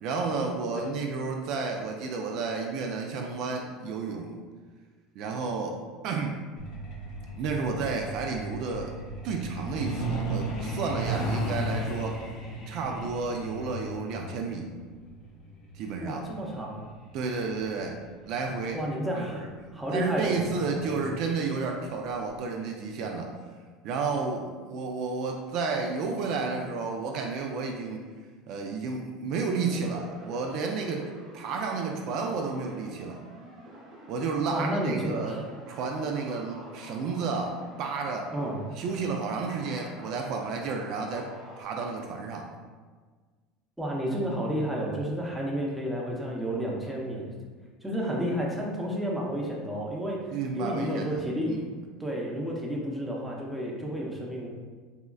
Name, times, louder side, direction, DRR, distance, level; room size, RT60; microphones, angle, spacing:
voice 1, 0.0-4.3 5.2-5.8 6.0-6.4 7.3-8.9 9.2-12.2 12.7-14.7 15.7-16.2 17.1-17.9 18.3-18.8 19.2-19.5 19.9-23.3 23.8-28.0 28.5-31.1 31.3-33.2 34.1-35.4 35.7-38.3 38.8-41.3 41.6-42.5 50.3-51.7, right 4 dB, 60° right, 2 dB, 0.3 m, -31 dB
Truck, 6.6-18.9 20.1-20.3 20.7-20.8 21.2-21.5 21.8-21.9 22.4-22.5, right 1 dB, 55° left, 0.7 m, -35 dB
voice 2, 16.0-16.8 18.7-19.4 19.7-21.1 34.5-35.4 38.3-38.6 43.8-47.3 47.8-50.2 50.6-51.6 52.0-54.5, equal, 5° right, -3 dB, 0.6 m, -31 dB
sound 1, 29.6-41.6, right 2 dB, 40° right, 0.9 m, -48 dB
3.6 x 2.1 x 2.3 m, 1.5 s
supercardioid pair, 110°, 0 cm